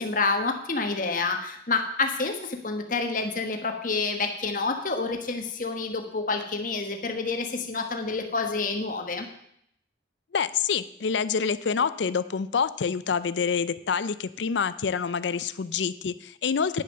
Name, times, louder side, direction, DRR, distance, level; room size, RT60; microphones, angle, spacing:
voice 1, 0.0-9.3, left 3 dB, 45° left, 5 dB, 1.3 m, -28 dB
voice 2, 10.3-16.8, left 6 dB, 80° left, 15 dB, 0.5 m, -27 dB
10.0 x 6.5 x 6.5 m, 0.72 s
head